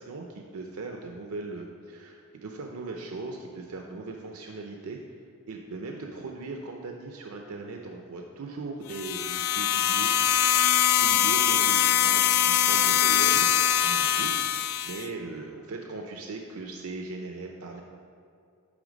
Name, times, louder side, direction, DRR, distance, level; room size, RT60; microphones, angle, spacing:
voice 1, 0.0-5.0 5.5-10.1 11.0-17.8, right 3 dB, 70° right, 1 dB, 0.5 m, -39 dB
sound 1, 8.9-15.1, left 10 dB, 65° left, 0.4 m, -23 dB
10.0 x 3.4 x 5.1 m, 2.4 s
head